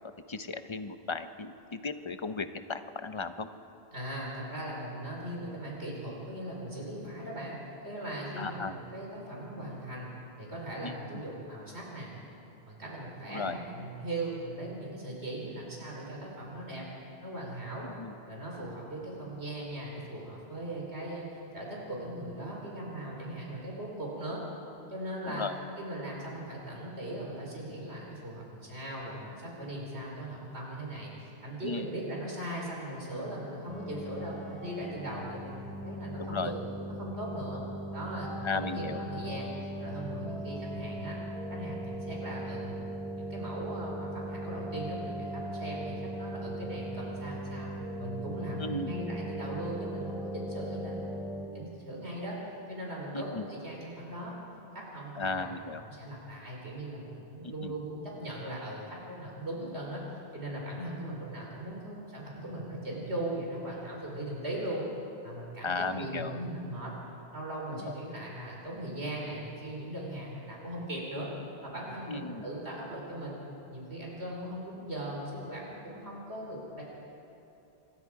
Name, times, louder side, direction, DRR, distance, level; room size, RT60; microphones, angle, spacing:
voice 1, 0.0-3.5 8.4-8.7 10.8-11.2 13.3-13.6 18.0-18.1 25.3-25.6 31.6-31.9 36.2-36.5 38.4-39.0 48.6-48.9 53.1-53.4 55.2-55.8 57.4-57.7 65.6-66.4 67.7-67.9 72.1-72.5, left 4 dB, 30° left, 9 dB, 0.8 m, -36 dB
voice 2, 3.9-12.1 12.6-16.9 17.2-17.9 18.3-21.3 21.5-24.4 24.9-25.5 25.8-36.6 37.0-37.6 37.9-39.5 39.8-41.2 41.5-42.8 43.2-47.7 48.0-51.3 51.5-52.4 52.7-54.3 54.7-55.5 55.9-60.0 60.3-64.8 65.2-66.9 67.3-71.3 71.6-73.4 73.7-76.8, right 1 dB, 90° right, -3 dB, 4.5 m, -39 dB
sound 1, 33.7-51.5, right 1 dB, ahead, 3.1 m, -39 dB
26.5 x 22.0 x 4.9 m, 2.9 s
omnidirectional pair, 1.1 m